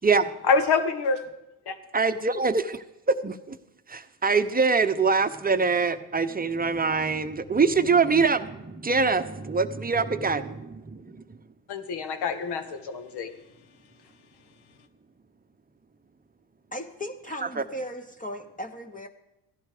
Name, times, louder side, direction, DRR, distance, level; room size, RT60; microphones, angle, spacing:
voice 1, 0.5-1.2 1.7-1.8 11.7-13.3, left 4 dB, 55° left, 9 dB, 1.6 m, -26 dB
voice 2, 1.9-2.8 3.2-3.6 3.9-11.2, right 4 dB, 20° right, 10 dB, 0.9 m, -24 dB
voice 3, 16.7-19.1, equal, 15° left, 6 dB, 1.2 m, -37 dB
15.5 x 11.5 x 5.0 m, 0.95 s
supercardioid pair, 75°, 46 cm